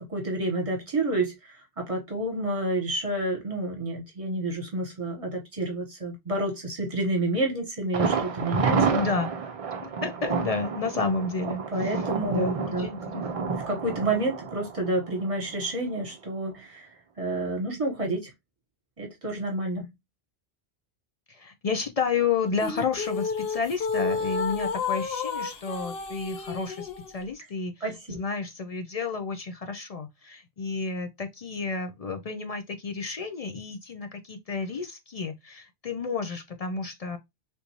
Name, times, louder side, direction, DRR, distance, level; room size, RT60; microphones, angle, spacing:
voice 1, 0.1-8.9 11.7-12.9 13.7-18.3 19.0-19.9 27.8-28.2, right 2 dB, 35° right, 1.2 m, -29 dB
Thunder, 7.9-15.7 16.0-16.1 16.5-16.6, right 5 dB, 50° right, 0.4 m, -29 dB
voice 2, 8.9-9.3 9.8-12.0 12.3-13.3 21.3-37.2, left 4 dB, 50° left, 0.5 m, -31 dB
sound 1, 22.6-27.1, left 5 dB, 70° left, 1.0 m, -31 dB
3.6 x 2.6 x 2.8 m
omnidirectional pair, 1.1 m